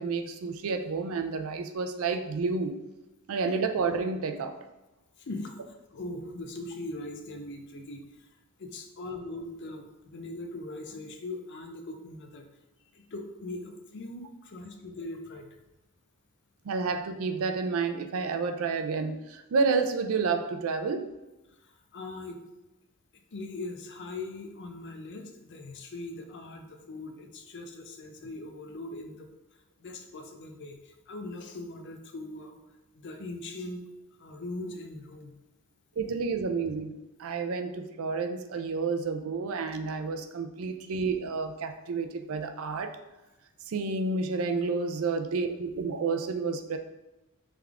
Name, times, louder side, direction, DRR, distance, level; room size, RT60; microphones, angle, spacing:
voice 1, 0.0-2.8 3.3-4.6 16.6-21.1 36.0-36.9 37.2-43.0 43.7-46.8, right 4 dB, 65° right, 6 dB, 0.4 m, -30 dB
voice 2, 5.2-8.3 8.6-12.5 12.9-15.6 21.5-22.4 23.3-29.3 29.8-32.6 32.9-33.8 34.2-35.3, left 2 dB, 50° left, 5 dB, 0.5 m, -40 dB
3.5 x 3.4 x 3.5 m, 1.0 s
head